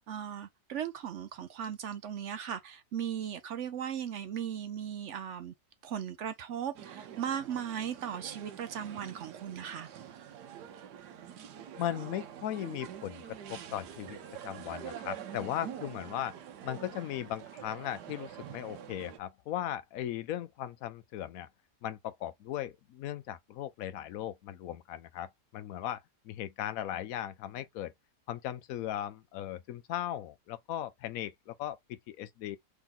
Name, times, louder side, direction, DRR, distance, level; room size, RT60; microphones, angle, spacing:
voice 1, 0.0-5.5 5.8-9.9, right 9 dB, 70° right, 0.7 m, -37 dB
sound 1, 6.7-19.2, right 9 dB, 85° right, 1.3 m, -46 dB
voice 2, 11.8-16.4 16.6-21.5 21.8-27.9 28.3-32.6, left 11 dB, 70° left, 0.9 m, -38 dB
3.6 x 2.9 x 3.7 m
omnidirectional pair, 1.7 m